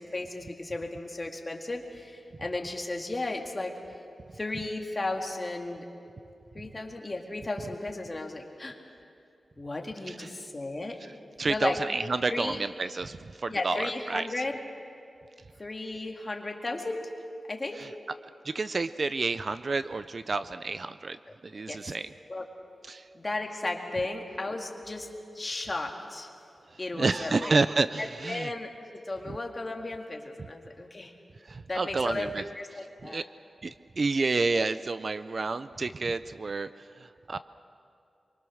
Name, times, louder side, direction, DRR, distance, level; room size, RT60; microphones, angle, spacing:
voice 1, 0.0-3.7 4.3-5.9 6.5-8.8 9.6-11.0 11.4-11.8 12.3-12.6 13.5-14.6 15.6-17.1 17.5-17.9 21.7-22.0 22.3-22.4 23.1-25.1 25.3-26.3 26.8-27.6 28.0-31.1 31.7-32.3 32.6-33.2, left 2 dB, 25° left, 2 dB, 2.1 m, -34 dB
voice 2, 10.1-10.4 11.0-14.4 17.7-17.9 18.4-22.1 22.8-23.1 26.7-28.5 29.3-29.4 31.4-32.4 33.0-33.2 33.6-37.4, right 3 dB, 40° right, 12 dB, 0.4 m, -30 dB
25.5 x 23.5 x 6.4 m, 2.6 s
wide cardioid pair, 165°, 0 cm